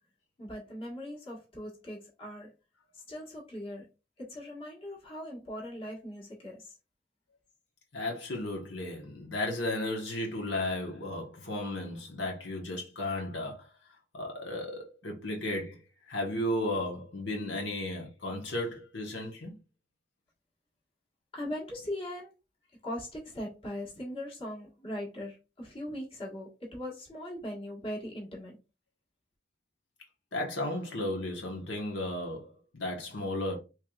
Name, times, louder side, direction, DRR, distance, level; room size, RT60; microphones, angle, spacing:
voice 1, 0.4-2.5 3.1-3.9 4.2-6.7 21.3-22.3 22.8-28.6, left 1 dB, 30° left, 1.4 m, -40 dB
voice 2, 7.9-13.7 14.1-15.8 16.1-19.5 30.3-33.6, left 1 dB, 75° left, 1.2 m, -34 dB
4.6 x 3.2 x 2.3 m
head